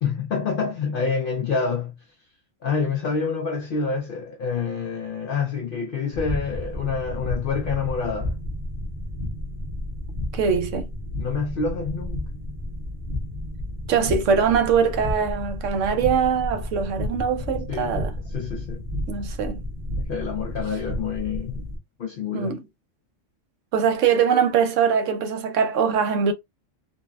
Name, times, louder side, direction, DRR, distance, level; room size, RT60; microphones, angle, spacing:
voice 1, 0.0-2.0 2.6-8.4 11.2-12.3 17.7-18.0 18.3-18.8 20.0-21.7 22.0-22.6, left 5 dB, 60° left, 0.6 m, -27 dB
sound 1, 6.1-21.8, left 1 dB, 45° right, 1.4 m, -32 dB
voice 2, 10.3-10.9 13.9-18.1 19.1-19.6 22.3-22.6 23.7-26.3, right 6 dB, 75° right, 0.9 m, -22 dB
4.0 x 2.1 x 2.2 m
omnidirectional pair, 1.3 m